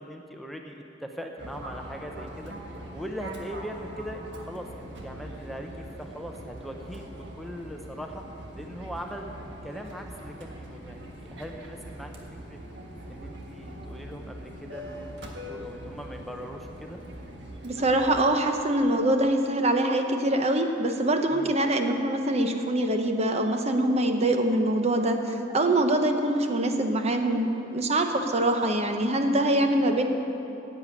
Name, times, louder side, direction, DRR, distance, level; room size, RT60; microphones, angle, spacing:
voice 1, 0.0-2.5 2.9-5.7 6.0-8.2 8.5-9.3 9.6-12.1 12.5-12.6 13.1-15.1 15.5-17.0 21.3-21.6, equal, ahead, 2 dB, 0.7 m, -40 dB
Fixed-wing aircraft airplane, 1.4-18.3, equal, 80° right, 1.5 m, -42 dB
voice 2, 17.6-30.1, right 1 dB, 35° right, 5 dB, 0.8 m, -24 dB
11.0 x 8.2 x 8.4 m, 3.0 s
head